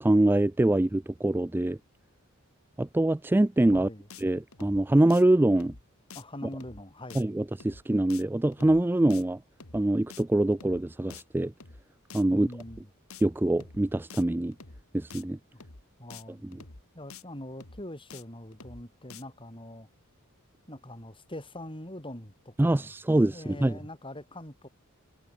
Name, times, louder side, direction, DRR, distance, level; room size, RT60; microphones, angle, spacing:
voice 1, 0.0-1.8 2.8-3.9 4.2-5.7 7.1-9.4 9.7-11.5 12.1-12.5 13.2-14.5 14.9-15.4 16.3-16.6 22.6-23.8, right 1 dB, 10° right, 0.3 m, -24 dB
sound 1, 3.6-3.8 4.1-4.2 4.5-4.8 5.1-5.2 5.6-5.8 6.1-6.2 6.5-6.8 7.1-7.2 7.6-7.8 8.1-8.2 8.5-8.8 9.1-9.2 9.6-9.8 10.1-10.2 10.5-10.8 11.1-11.2 11.6-11.8 12.1-12.2 12.5-12.8 13.1-13.2 13.6-13.8 14.1-14.2 14.5-14.8 15.1-15.2 15.6-15.8 16.1-16.2 16.5-16.8 17.1-17.2 17.6-17.8 18.1-18.2 18.5-18.8 19.1-19.2, left 5 dB, 70° left, 2.3 m, -47 dB
voice 2, 3.7-4.1 6.1-7.3 12.3-12.9 15.5-15.6 16.0-16.5 16.9-19.9 20.7-22.9 23.3-24.7, left 1 dB, 25° left, 8.0 m, -43 dB
head